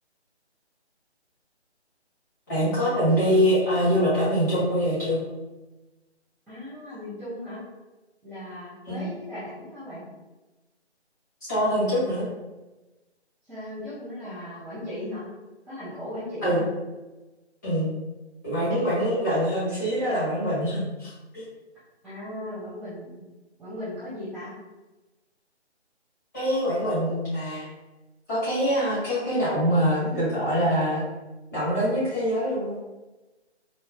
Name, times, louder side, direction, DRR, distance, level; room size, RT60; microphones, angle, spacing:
voice 1, 2.5-5.2 8.9-9.1 11.5-12.2 16.4-16.6 17.6-17.9 18.4-21.4 26.3-27.6 28.3-31.0 31.5-32.7, equal, 15° left, -11 dB, 1.2 m, -24 dB
voice 2, 6.5-7.6 8.2-10.0 13.5-15.3 15.7-16.6 22.0-23.2 23.6-24.5, left 1 dB, ahead, -18 dB, 0.5 m, -37 dB
4.2 x 2.7 x 2.4 m, 1.1 s
figure-of-eight pair, 170°, 34 cm